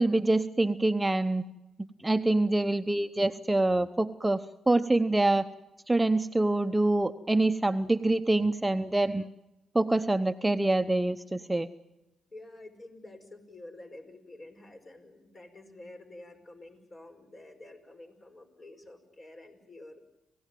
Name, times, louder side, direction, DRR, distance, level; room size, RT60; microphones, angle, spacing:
voice 1, 0.0-1.5 2.0-5.5 5.9-9.2 9.7-11.7, right 2 dB, 15° right, 10 dB, 0.9 m, -25 dB
voice 2, 12.3-20.0, left 2 dB, 40° left, 5 dB, 5.4 m, -49 dB
28.5 x 16.0 x 9.3 m, 0.98 s
supercardioid pair, 55°, 0 cm